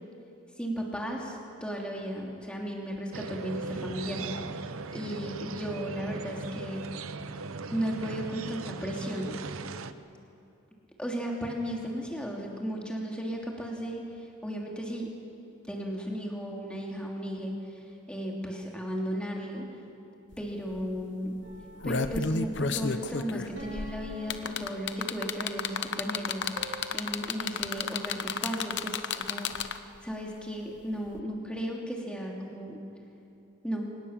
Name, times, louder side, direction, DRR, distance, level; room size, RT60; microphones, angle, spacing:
voice 1, 0.6-4.3 4.9-6.9 7.7-9.4 11.0-15.1 15.7-17.8 18.1-19.6 20.4-21.4 21.8-32.8 33.6-33.9, equal, 5° left, -1 dB, 2.9 m, -35 dB
sound 1, 3.1-9.9, right 3 dB, 90° right, 0.8 m, -38 dB
sound 2, 20.3-20.4 20.7-21.0 21.5-30.0 31.1-31.2, left 5 dB, 55° left, 0.8 m, -32 dB
sound 3, 21.4-22.4 23.6-25.5 26.6-27.0, right 1 dB, 50° right, 3.0 m, -47 dB
24.5 x 19.0 x 7.4 m, 2.8 s
head